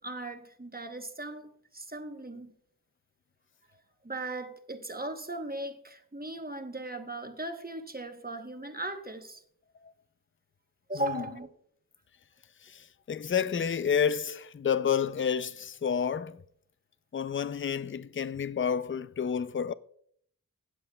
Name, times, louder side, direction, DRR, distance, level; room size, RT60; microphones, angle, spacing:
voice 1, 0.0-2.5 3.7-9.4 10.9-11.5, right 1 dB, 25° right, 1.0 m, -38 dB
voice 2, 12.6-16.4 17.1-19.7, left 7 dB, 35° left, 0.4 m, -30 dB
16.5 x 7.7 x 2.3 m
wide cardioid pair, 50°, 36 cm